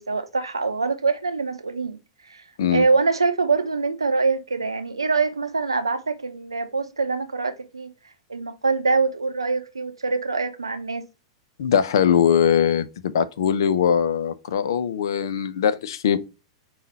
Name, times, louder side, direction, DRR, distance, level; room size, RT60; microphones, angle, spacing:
voice 1, 0.0-2.0 2.3-2.4 2.7-7.9 8.3-11.0, right 4 dB, 85° right, 0.6 m, -24 dB
voice 2, 11.6-16.2, left 8 dB, 65° left, 0.5 m, -21 dB
5.5 x 2.4 x 4.0 m
figure-of-eight pair, 95°, 3 cm